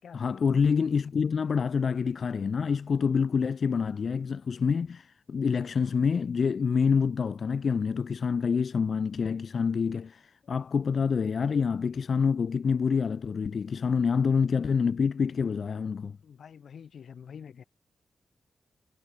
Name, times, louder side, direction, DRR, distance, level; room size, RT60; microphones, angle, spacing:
voice 1, 0.1-16.2, left 6 dB, 50° left, 0.5 m, -27 dB
voice 2, 16.2-17.6, left 7 dB, 70° left, 3.6 m, -46 dB
wide cardioid pair, 170°, 0 cm